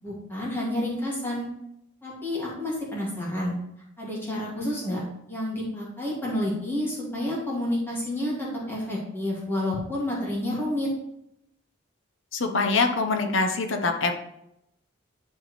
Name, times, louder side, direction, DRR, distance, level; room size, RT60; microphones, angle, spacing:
voice 1, 0.0-1.5 2.0-3.5 4.0-5.0 5.3-10.9, left 1 dB, 10° left, -6 dB, 2.2 m, -29 dB
voice 2, 12.3-14.1, left 3 dB, 65° left, 6 dB, 0.9 m, -24 dB
10.5 x 4.7 x 3.2 m, 0.79 s
head